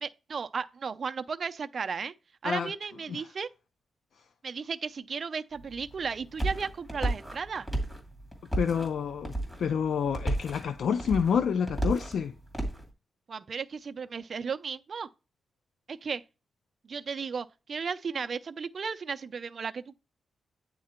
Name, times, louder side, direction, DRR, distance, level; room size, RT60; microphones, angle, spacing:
voice 1, 0.0-2.1 2.4-3.5 4.4-7.7 13.3-15.1 15.9-16.2 16.9-20.0, right 5 dB, 45° right, 0.5 m, -35 dB
sound 1, 5.5-12.9, right 1 dB, 10° left, 2.2 m, -34 dB
voice 2, 8.6-9.3 9.6-12.3, left 7 dB, 70° left, 0.4 m, -28 dB
9.4 x 3.8 x 4.3 m
wide cardioid pair, 135°, 0 cm